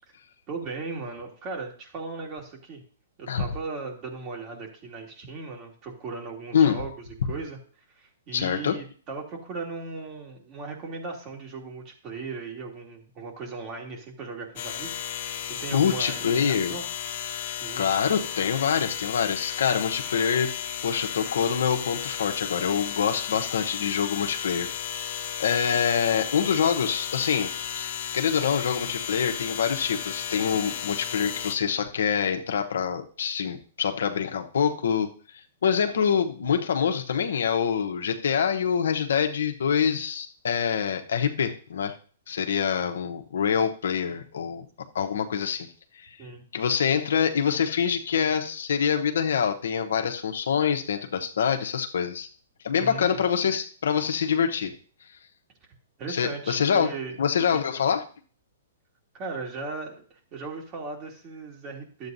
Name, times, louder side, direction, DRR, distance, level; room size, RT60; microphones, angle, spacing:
voice 1, 0.5-2.8 3.2-6.9 7.2-7.6 7.9-16.8 17.3-17.9 25.7-25.8 46.2-46.4 52.7-53.2 56.0-57.2 59.1-62.1, right 4 dB, 35° right, 0 dB, 2.6 m, -37 dB
voice 2, 6.5-6.8 8.3-8.8 15.7-16.8 17.8-20.5 20.8-35.1 35.6-42.0 42.3-44.6 44.9-45.7 46.5-52.3 52.6-54.7 56.1-56.9 57.2-58.0, left 7 dB, 75° left, 5 dB, 1.0 m, -25 dB
sound 1, 14.6-31.6, left 9 dB, 55° left, 1.5 m, -34 dB
12.0 x 8.2 x 2.7 m, 0.42 s
hypercardioid pair, 135°, 0 cm